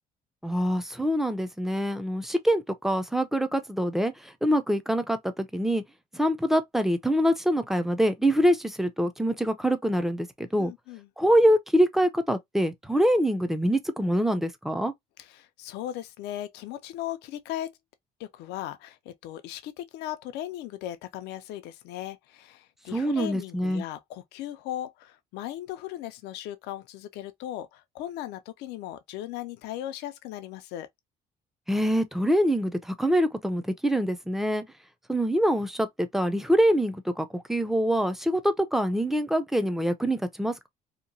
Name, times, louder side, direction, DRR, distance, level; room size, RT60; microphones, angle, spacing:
voice 1, 0.4-5.8 6.1-10.7 11.2-14.9 22.9-23.8 31.7-34.6 35.1-40.7, equal, ahead, 0.4 m, -25 dB
voice 2, 10.6-11.1 15.2-17.8 18.2-30.9, left 12 dB, 85° left, 0.4 m, -37 dB
2.8 x 2.2 x 2.5 m
cardioid pair, 110°, 17 cm